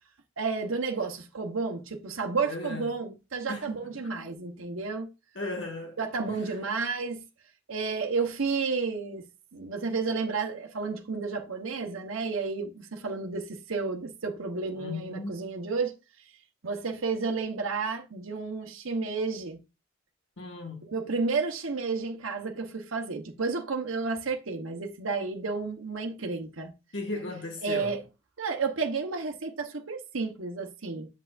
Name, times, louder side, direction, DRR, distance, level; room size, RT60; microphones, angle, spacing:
voice 1, 0.4-5.1 6.0-7.2 7.7-9.3 9.5-15.9 16.6-19.6 20.8-26.7 27.6-28.0 28.4-31.1, right 4 dB, 85° right, 1.0 m, -31 dB
voice 2, 2.4-2.9 3.5-4.1 5.3-6.0 6.3-6.5 14.7-15.5 20.4-20.8 26.9-28.0, left 2 dB, 60° left, 1.6 m, -37 dB
8.0 x 7.3 x 2.5 m
head